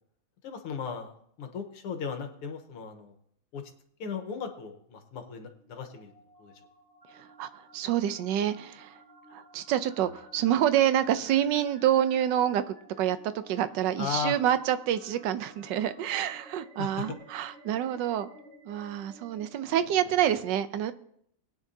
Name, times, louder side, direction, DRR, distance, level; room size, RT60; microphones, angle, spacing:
voice 1, 0.4-3.1 3.5-3.6 4.0-6.1 6.4-6.5 14.0-14.4 16.8-17.1, left 6 dB, 90° left, 2.2 m, -36 dB
sound 1, 5.3-20.4, equal, 15° left, 3.6 m, -54 dB
voice 2, 7.1-9.0 9.3-18.3 18.7-20.9, right 11 dB, 70° right, 1.1 m, -27 dB
21.0 x 9.4 x 2.8 m
omnidirectional pair, 2.4 m